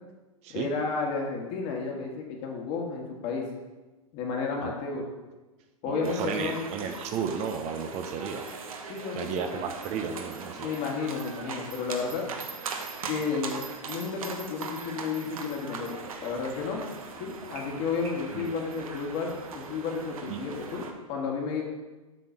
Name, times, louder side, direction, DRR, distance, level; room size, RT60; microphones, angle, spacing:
voice 1, 0.5-3.5 4.1-5.0 5.8-6.7 8.9-9.4 10.6-12.2 13.1-16.8 17.2-21.6, left 5 dB, 45° left, 0 dB, 1.9 m, -32 dB
voice 2, 5.9-8.4 9.1-10.7 18.3-18.5 20.3-20.4, right 6 dB, 35° right, 6 dB, 0.8 m, -33 dB
sound 1, 6.0-20.9, right 5 dB, 70° right, 1.1 m, -40 dB
7.9 x 3.9 x 6.3 m, 1.2 s
hypercardioid pair, 105°, 19 cm